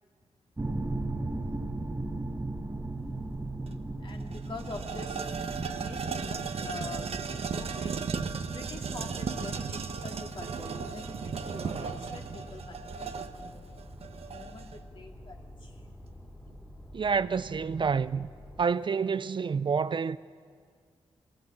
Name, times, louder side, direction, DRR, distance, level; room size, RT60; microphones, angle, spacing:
sound 1, 0.6-9.5, right 2 dB, 20° right, 1.2 m, -37 dB
sound 2, 2.6-18.6, left 1 dB, 15° left, 2.7 m, -48 dB
sound 3, 3.7-3.8 4.1-14.8, right 5 dB, 65° right, 1.0 m, -36 dB
voice 1, 4.0-5.3 5.7-7.9 8.5-13.8 14.3-16.1, left 3 dB, 50° left, 2.3 m, -45 dB
voice 2, 16.9-18.3 18.6-20.2, right 5 dB, 45° right, 0.4 m, -28 dB
21.5 x 18.5 x 7.2 m
cardioid pair, 70°, 11 cm